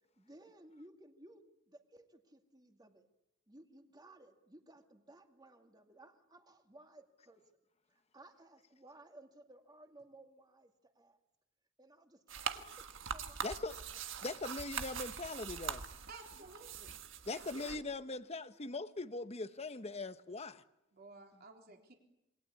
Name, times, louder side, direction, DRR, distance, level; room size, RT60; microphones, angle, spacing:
voice 1, 0.2-3.1 3.5-7.4 7.9-11.2 11.8-13.5 14.3-14.5 16.3-16.6 17.4-17.5, right 1 dB, 20° right, 2.3 m, -59 dB
sound 1, 12.3-17.8, right 6 dB, 70° right, 1.6 m, -43 dB
voice 2, 13.4-13.8 14.2-15.8 17.3-20.6, left 3 dB, 30° left, 1.0 m, -41 dB
voice 3, 16.1-16.9 17.3-17.8 20.9-22.0, right 3 dB, 50° right, 3.8 m, -54 dB
27.5 x 22.5 x 8.5 m
head